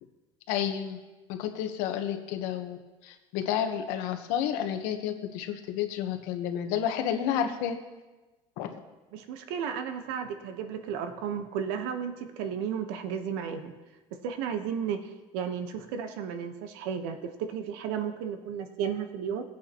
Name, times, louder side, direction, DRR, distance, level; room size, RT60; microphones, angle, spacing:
voice 1, 0.5-1.0 1.3-2.8 3.0-7.8 8.6-8.8, left 9 dB, 75° left, 5 dB, 1.1 m, -30 dB
voice 2, 9.1-13.7 14.2-19.4, right 7 dB, 85° right, 7 dB, 1.1 m, -33 dB
18.0 x 8.7 x 3.0 m, 1.2 s
cardioid pair, 170°, 13 cm